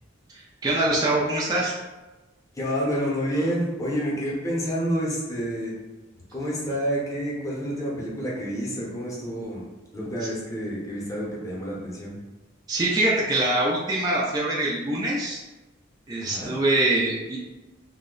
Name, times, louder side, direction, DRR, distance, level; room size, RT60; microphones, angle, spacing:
voice 1, 0.6-1.7 12.7-15.4 16.1-17.4, right 2 dB, 20° right, -5 dB, 0.4 m, -24 dB
voice 2, 2.5-5.7 6.3-9.7 9.9-12.2 16.2-16.5, equal, 15° left, -5 dB, 0.7 m, -28 dB
2.7 x 2.0 x 3.7 m, 1.1 s
head